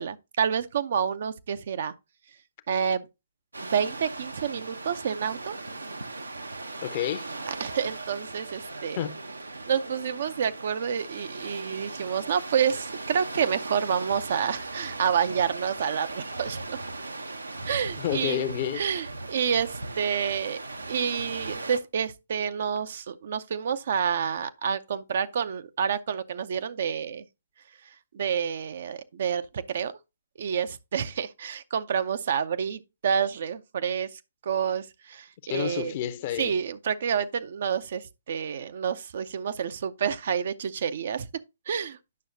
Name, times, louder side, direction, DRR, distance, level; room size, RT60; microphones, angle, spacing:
voice 1, 0.0-1.9 2.7-3.1 3.6-5.6 7.5-9.0 9.7-16.8 17.7-18.4 18.7-20.6 20.9-27.2 28.1-30.0 30.4-36.0 36.4-41.3 41.7-42.0, right 7 dB, 50° right, 0.6 m, -29 dB
sound 1, 3.5-21.8, right 2 dB, 80° right, 0.9 m, -38 dB
voice 2, 6.8-7.3 9.0-9.2 18.0-18.8 35.5-36.5, left 11 dB, 40° left, 0.7 m, -29 dB
9.4 x 6.2 x 2.7 m
figure-of-eight pair, 130°, 0 cm